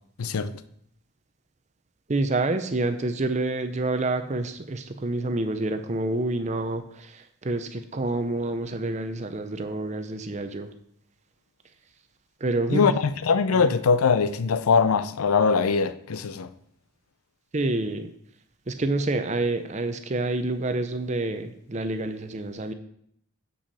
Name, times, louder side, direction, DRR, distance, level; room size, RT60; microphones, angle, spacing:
voice 1, 0.2-0.5 12.7-16.5, left 5 dB, 90° left, 0.5 m, -22 dB
voice 2, 2.1-10.7 12.4-12.9 13.5-13.7 17.5-18.1 18.7-22.7, right 2 dB, 35° right, 0.6 m, -28 dB
7.0 x 6.0 x 4.2 m
head